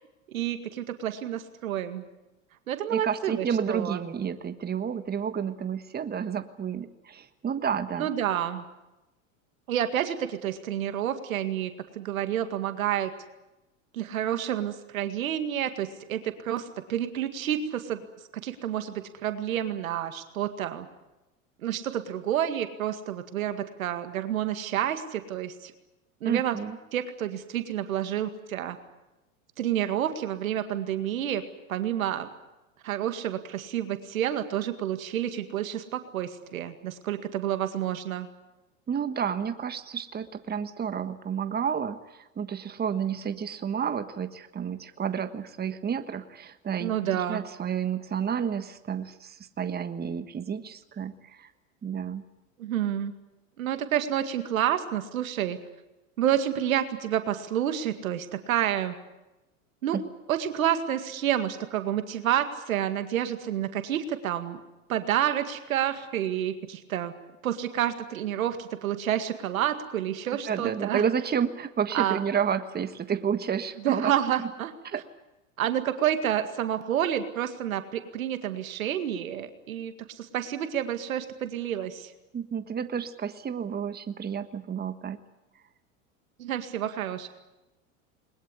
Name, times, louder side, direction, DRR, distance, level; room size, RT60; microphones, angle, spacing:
voice 1, 0.3-2.0 2.7-4.0 8.0-8.6 9.7-13.1 13.9-18.1 18.4-20.9 21.6-25.7 26.2-26.6 26.9-28.8 29.6-31.4 31.7-32.3 32.8-38.3 46.8-47.4 52.6-53.1 53.6-55.6 56.2-59.0 59.8-60.0 60.3-64.6 64.9-67.1 67.4-71.0 71.9-72.2 73.8-74.7 75.6-82.1 86.4-87.3, right 10 dB, 80° right, 9 dB, 2.1 m, -29 dB
voice 2, 2.9-8.1 26.2-26.8 38.9-51.5 51.8-52.3 59.9-60.0 70.5-74.1 74.9-75.0 82.3-85.2, right 7 dB, 25° right, 10 dB, 1.4 m, -30 dB
21.5 x 20.5 x 9.9 m, 0.97 s
hypercardioid pair, 95°, 41 cm